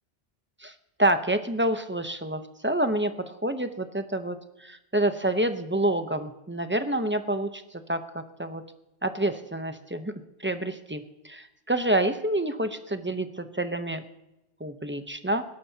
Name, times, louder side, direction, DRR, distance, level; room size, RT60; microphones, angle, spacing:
voice 1, 0.6-8.6 9.0-14.0 14.6-15.4, right 1 dB, 15° right, 8 dB, 0.7 m, -28 dB
20.5 x 11.5 x 2.8 m, 0.94 s
omnidirectional pair, 1.0 m